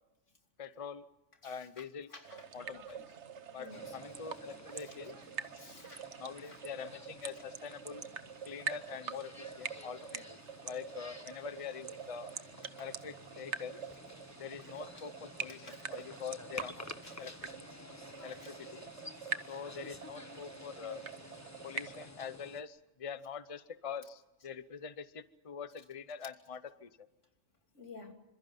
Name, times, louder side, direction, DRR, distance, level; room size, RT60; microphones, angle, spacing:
voice 1, 0.6-1.0 1.4-2.1 2.5-3.0 3.5-5.2 6.2-8.0 8.4-10.4 10.6-12.3 12.8-13.8 14.4-16.9 17.2-17.5 18.2-18.9 19.5-21.0 21.6-27.1, left 6 dB, 30° left, 0.8 m, -44 dB
voice 2, 1.4-1.8 2.1-2.4 3.6-4.0 4.9-5.0 5.5-6.1 12.8-12.9 14.9-15.0 15.6-15.8 17.1-17.3 27.7-28.1, left 3 dB, 85° left, 3.3 m, -52 dB
sound 1, 2.2-22.1, right 7 dB, 70° right, 1.3 m, -45 dB
sound 2, 3.7-22.6, left 2 dB, 15° left, 1.3 m, -52 dB
27.5 x 26.5 x 5.5 m
omnidirectional pair, 1.2 m